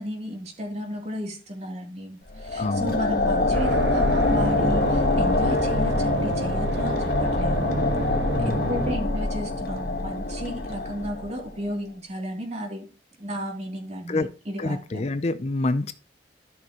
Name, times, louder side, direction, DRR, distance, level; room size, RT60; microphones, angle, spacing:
voice 1, 0.0-7.9 8.4-12.9 13.2-15.0, equal, 40° right, 1 dB, 3.0 m, -33 dB
sound 1, 2.3-11.6, left 2 dB, 60° left, 1.4 m, -25 dB
voice 2, 2.6-3.0 8.3-8.9 14.1-14.3 14.6-15.9, left 2 dB, 40° left, 12 dB, 0.5 m, -27 dB
sound 2, 3.5-8.9, right 3 dB, 85° right, 0.9 m, -30 dB
13.0 x 6.6 x 3.0 m, 0.31 s
head